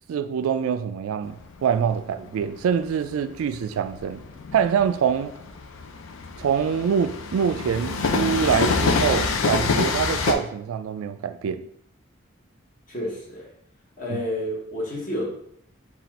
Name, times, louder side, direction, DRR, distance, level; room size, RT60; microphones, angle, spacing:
voice 1, 0.1-1.4 1.6-4.2 4.5-5.3 6.4-11.7 14.1-14.2, right 7 dB, 85° right, 0.3 m, -25 dB
Train, 1.2-10.3, left 4 dB, 80° left, 0.4 m, -26 dB
voice 2, 12.9-13.5 14.0-15.3, left 1 dB, 40° left, 1.1 m, -30 dB
4.1 x 2.4 x 4.1 m
head